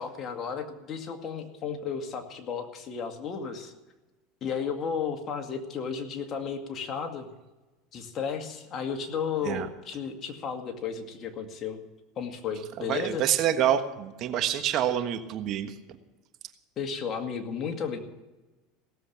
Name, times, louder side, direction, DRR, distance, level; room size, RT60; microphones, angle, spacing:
voice 1, 0.0-3.7 4.4-7.3 7.9-11.8 12.2-13.2 16.8-18.0, left 6 dB, 40° left, 5 dB, 2.1 m, -33 dB
voice 2, 12.9-15.7, right 10 dB, 50° right, 9 dB, 1.3 m, -27 dB
17.5 x 7.6 x 8.7 m, 1.1 s
supercardioid pair, 110°, 0 cm